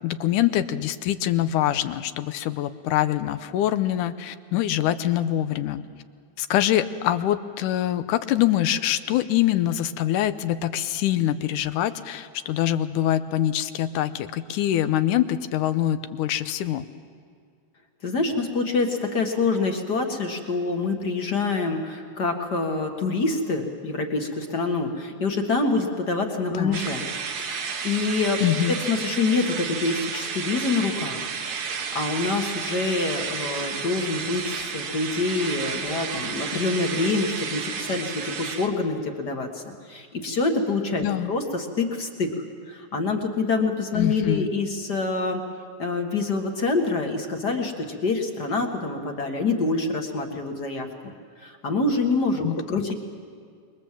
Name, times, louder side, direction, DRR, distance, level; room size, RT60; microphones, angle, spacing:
voice 1, 0.0-5.8 6.4-16.9 26.5-26.8 28.4-28.8 41.0-41.3 43.9-44.5 52.4-52.6, left 12 dB, 90° left, 11 dB, 2.3 m, -24 dB
voice 2, 18.0-27.1 27.3-28.4 28.7-31.3 31.7-39.6 39.9-42.3 42.7-45.4 45.8-50.9 51.4-52.9, left 3 dB, 40° left, 3 dB, 1.9 m, -26 dB
sound 1, 26.7-38.7, right 6 dB, 70° right, 2.9 m, -32 dB
27.5 x 22.0 x 7.6 m, 2.1 s
omnidirectional pair, 3.5 m